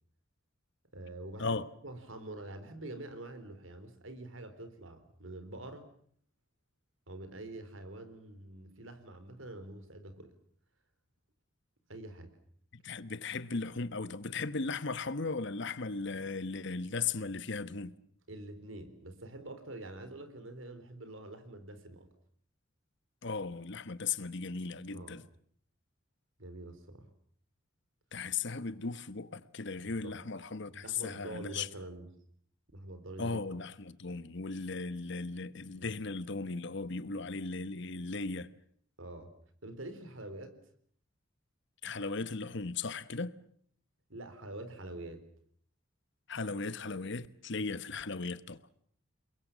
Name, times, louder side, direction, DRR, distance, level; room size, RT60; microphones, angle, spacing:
voice 1, 0.9-5.8 7.1-10.3 11.9-12.3 18.3-22.1 24.9-25.2 26.4-27.1 29.8-30.2 30.7-32.1 32.7-33.4 35.7-35.9 39.0-39.3 39.6-40.5 44.1-45.2, right 2 dB, 75° right, 4.1 m, -46 dB
voice 2, 12.7-17.9 23.2-25.2 28.1-31.7 33.2-38.5 41.8-43.3 46.3-48.6, left 4 dB, 60° left, 1.1 m, -37 dB
29.0 x 22.0 x 7.4 m
head